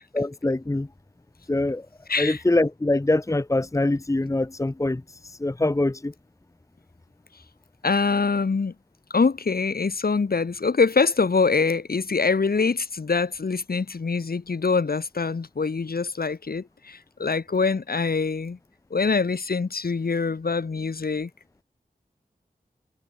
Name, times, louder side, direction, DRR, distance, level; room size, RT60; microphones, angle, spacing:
voice 1, 0.1-0.9 1.5-1.9 2.2-6.1, left 2 dB, 20° left, 1.0 m, -24 dB
voice 2, 2.1-2.4 7.8-8.7 9.1-18.6 18.9-21.3, left 4 dB, 75° left, 4.0 m, -24 dB
wide cardioid pair, 70°, 16 cm